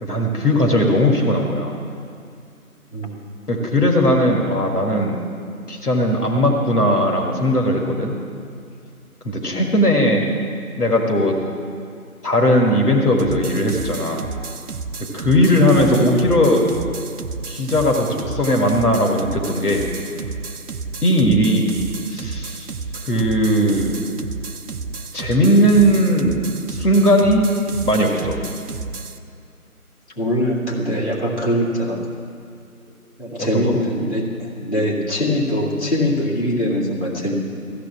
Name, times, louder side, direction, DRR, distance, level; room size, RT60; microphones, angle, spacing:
voice 1, 0.0-1.8 3.5-5.2 5.7-8.1 9.3-10.3 10.8-11.4 12.2-14.3 15.1-16.7 17.5-19.9 21.0-21.7 22.1-22.7 23.1-24.0 25.1-26.4 26.7-27.5 27.8-28.4 33.4-33.8, equal, 80° left, 1 dB, 1.8 m, -18 dB
voice 2, 2.9-3.3 9.4-9.6 15.3-15.7 30.2-32.0 33.2-37.3, left 1 dB, 45° left, -5 dB, 2.4 m, -22 dB
sound 1, 13.2-29.2, right 4 dB, 80° right, 0.7 m, -32 dB
15.0 x 7.6 x 7.2 m, 2.4 s
figure-of-eight pair, 180°, 45 cm